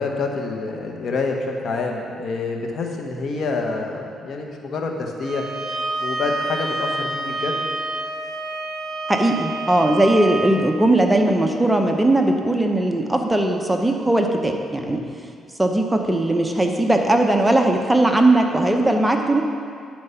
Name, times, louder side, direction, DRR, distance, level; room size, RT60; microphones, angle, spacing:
voice 1, 0.0-5.4 6.0-7.6 9.7-9.8 14.8-15.1, left 3 dB, 60° left, 2 dB, 1.0 m, -27 dB
Bowed string instrument, 5.2-10.5, right 2 dB, 35° right, 1.1 m, -28 dB
voice 2, 9.1-15.0 15.6-19.4, right 1 dB, 10° right, 3 dB, 0.7 m, -19 dB
9.4 x 4.6 x 5.6 m, 2.3 s
cardioid pair, 90°, 0 cm